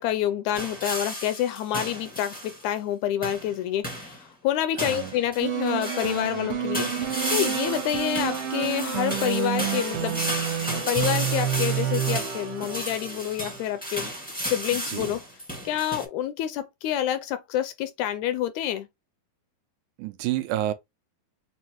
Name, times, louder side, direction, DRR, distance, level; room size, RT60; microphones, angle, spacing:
voice 1, 0.0-10.2 10.7-14.1 14.4-15.2 15.7-18.9, left 11 dB, 80° left, 1.8 m, -28 dB
sound 1, 0.5-2.7 3.2-3.5 3.8-4.2 4.8-6.4 6.7-16.0, equal, 5° left, 0.9 m, -33 dB
voice 2, 4.8-5.1 14.7-15.1 20.0-20.7, right 13 dB, 80° right, 2.1 m, -30 dB
sound 2, 5.4-13.6, right 9 dB, 55° right, 1.7 m, -29 dB
5.4 x 2.5 x 2.9 m
omnidirectional pair, 3.6 m